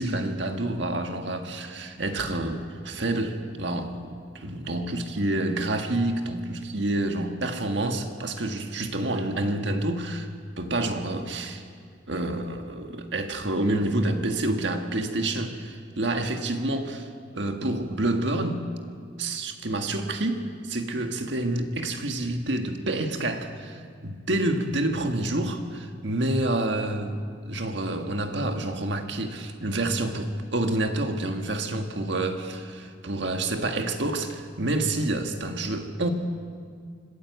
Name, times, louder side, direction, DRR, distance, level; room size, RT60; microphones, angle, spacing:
voice 1, 0.0-10.3 10.6-11.6 12.1-18.7 19.2-27.2 27.4-36.1, right 1 dB, 65° right, 5 dB, 1.7 m, -28 dB
25.5 x 14.5 x 8.1 m, 2.1 s
head